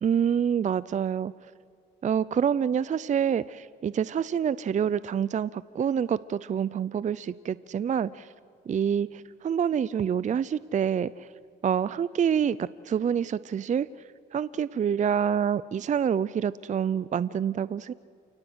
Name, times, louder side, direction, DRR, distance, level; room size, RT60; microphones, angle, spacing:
voice 1, 0.0-1.3 2.0-8.3 8.7-11.3 11.6-13.9 14.3-17.9, right 8 dB, 40° right, 18 dB, 0.5 m, -27 dB
29.0 x 18.0 x 8.0 m, 2.5 s
cardioid pair, 90°, 20 cm